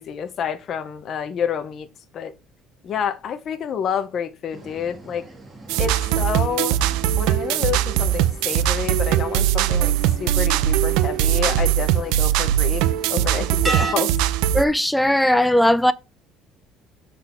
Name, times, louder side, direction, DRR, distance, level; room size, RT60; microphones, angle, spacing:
voice 1, 0.0-1.9 2.1-2.3 2.8-5.2 5.8-6.8 7.2-12.8 13.1-14.1, left 8 dB, 35° left, 0.7 m, -28 dB
sound 1, 4.5-13.9, right 3 dB, 15° right, 1.4 m, -36 dB
sound 2, 5.7-14.6, right 12 dB, 80° right, 0.6 m, -20 dB
voice 2, 14.5-15.9, left 1 dB, 5° left, 0.4 m, -18 dB
6.8 x 3.9 x 5.6 m
cardioid pair, 180°, 0 cm